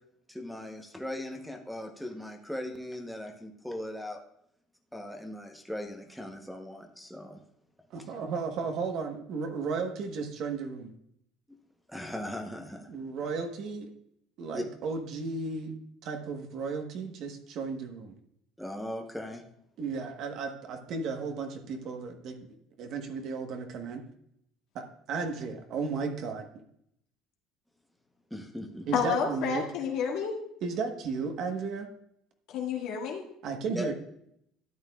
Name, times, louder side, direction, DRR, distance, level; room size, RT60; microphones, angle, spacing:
voice 1, 0.3-4.2 4.9-7.4 11.9-12.9 14.5-14.6 18.6-19.4 28.3-28.9 33.8-33.9, left 1 dB, ahead, 2 dB, 0.9 m, -39 dB
voice 2, 7.9-10.9 12.9-13.9 14.4-15.7 16.0-18.2 19.8-22.4 22.8-24.0 24.7-26.5 28.9-29.6 30.6-31.9 33.4-33.9, right 4 dB, 55° right, 5 dB, 1.2 m, -34 dB
voice 3, 28.9-30.4 32.5-33.2, left 6 dB, 65° left, 1 dB, 1.9 m, -30 dB
12.5 x 8.8 x 2.4 m, 0.72 s
cardioid pair, 135°, 0 cm